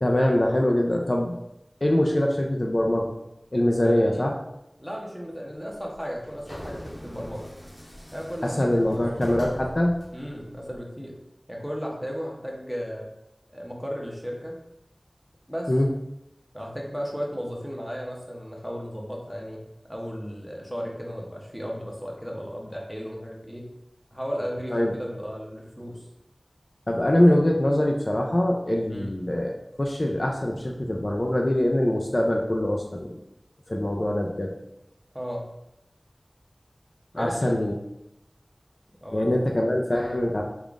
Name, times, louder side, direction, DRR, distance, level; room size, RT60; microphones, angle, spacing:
voice 1, 0.0-1.3 1.8-3.1 3.5-4.3 8.6-10.0 15.7-15.9 24.7-24.9 26.9-29.5 29.8-33.1 33.7-34.5 37.2-37.7 39.1-40.4, left 1 dB, 45° left, 0 dB, 0.4 m, -23 dB
voice 2, 3.8-4.3 4.8-7.5 8.1-9.0 10.1-11.2 11.5-13.1 13.5-14.6 15.5-15.7 16.5-19.6 19.9-23.7 24.1-26.1 28.9-29.1 35.1-35.5 37.1-37.8 39.0-39.4, equal, ahead, -1 dB, 0.8 m, -35 dB
sound 1, 5.9-10.8, equal, 30° left, 0.9 m, -42 dB
3.6 x 2.4 x 3.5 m, 0.87 s
wide cardioid pair, 40°, 0 cm